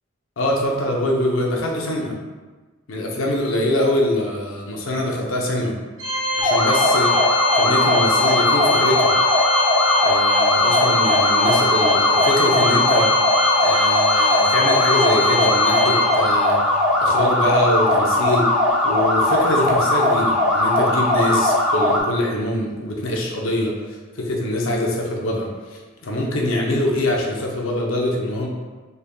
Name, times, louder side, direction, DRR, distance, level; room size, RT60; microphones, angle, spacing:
voice 1, 0.4-2.1 2.9-5.7 6.4-7.1 7.5-9.1 10.0-13.1 13.6-16.6 17.0-18.5 18.8-28.5, left 1 dB, 70° left, -1 dB, 0.7 m, -24 dB
Organ, 6.0-16.7, left 2 dB, 70° right, 0.6 m, -22 dB
sound 1, 6.4-22.0, left 1 dB, 5° right, 0.7 m, -19 dB
4.1 x 3.4 x 2.2 m, 1.3 s
head